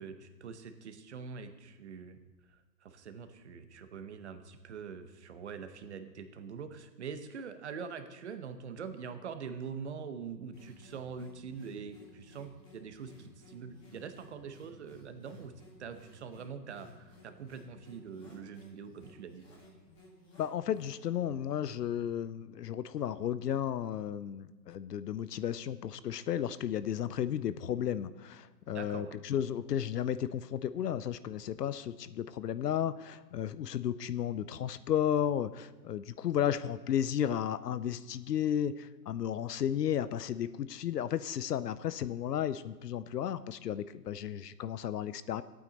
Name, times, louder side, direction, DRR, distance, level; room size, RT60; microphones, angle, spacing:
voice 1, 0.0-2.2 2.5-15.5 15.8-19.4 28.7-29.2, right 6 dB, 45° right, 8 dB, 0.9 m, -44 dB
sound 1, 10.5-21.2, left 1 dB, 20° left, 2.3 m, -57 dB
voice 2, 20.4-45.4, left 10 dB, 70° left, 15 dB, 0.6 m, -33 dB
14.5 x 8.9 x 4.0 m, 1.2 s
hypercardioid pair, 165°, 50 cm